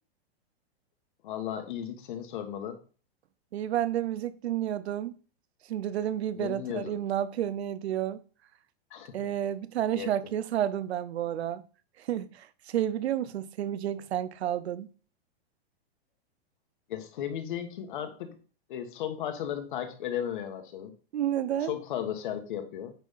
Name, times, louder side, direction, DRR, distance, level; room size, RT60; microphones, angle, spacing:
voice 1, 1.2-2.8 6.3-7.0 8.9-9.2 9.9-10.1 16.9-18.4 18.7-20.9 21.6-22.9, left 10 dB, 50° left, 1.5 m, -35 dB
voice 2, 3.5-5.2 5.6-8.2 9.1-11.6 12.0-14.9 21.1-21.7, right 11 dB, 85° right, 0.8 m, -31 dB
9.2 x 3.5 x 5.8 m
supercardioid pair, 170°, 31 cm